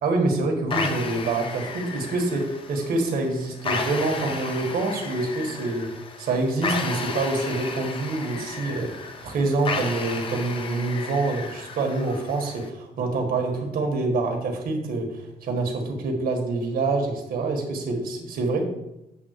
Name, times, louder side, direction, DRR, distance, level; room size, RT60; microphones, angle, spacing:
voice 1, 0.0-5.9 6.2-8.9 9.2-18.7, right 3 dB, 65° right, 2 dB, 1.7 m, -26 dB
sound 1, 0.7-12.7, left 4 dB, 35° left, 0.7 m, -33 dB
8.1 x 3.6 x 6.7 m, 0.89 s
cardioid pair, 170°, 16 cm